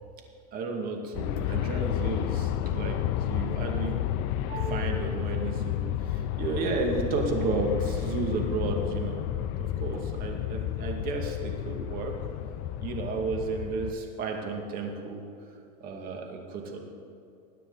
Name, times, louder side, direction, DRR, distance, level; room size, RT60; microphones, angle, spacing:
voice 1, 0.5-4.2 4.5-12.1 12.8-15.2 15.8-16.8, right 3 dB, 45° right, 2 dB, 2.4 m, -33 dB
Aircraft, 1.1-13.9, left 11 dB, 60° left, 0.6 m, -31 dB
21.0 x 9.2 x 4.1 m, 2.6 s
supercardioid pair, 130°, 20 cm